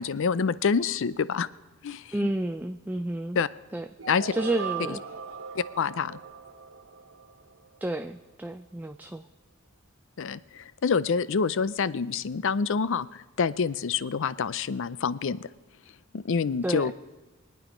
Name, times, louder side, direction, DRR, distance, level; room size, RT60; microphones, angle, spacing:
voice 1, 0.0-1.5 1.8-2.3 3.3-3.5 4.1-4.3 5.5-6.2 10.2-15.5 16.1-16.9, left 5 dB, 65° left, 17 dB, 0.5 m, -27 dB
voice 2, 2.1-3.4 3.7-3.9 4.3-5.0 7.8-9.2 16.6-16.9, right 1 dB, 10° right, 7 dB, 0.4 m, -30 dB
sound 1, 4.0-7.9, right 6 dB, 70° right, 0.9 m, -39 dB
24.0 x 9.2 x 5.1 m, 1.2 s
head